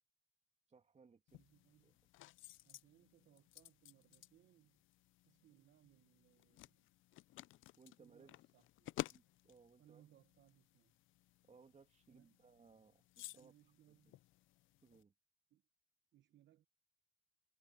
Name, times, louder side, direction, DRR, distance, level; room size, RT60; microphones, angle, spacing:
voice 1, 0.7-1.4 1.8-2.0 7.8-8.3 8.8-10.0 11.5-13.5 13.9-14.1 14.8-15.1, right 5 dB, 35° right, 2.3 m, -65 dB
sound 1, 1.3-15.0, left 16 dB, 80° left, 0.5 m, -54 dB
voice 2, 1.4-2.0 2.6-4.8 5.2-6.9 8.0-8.6 9.8-11.0 12.1-12.3 13.3-14.2 15.5-15.6 16.1-16.7, right 12 dB, 65° right, 0.9 m, -69 dB
cardioid pair, 90°, 20 cm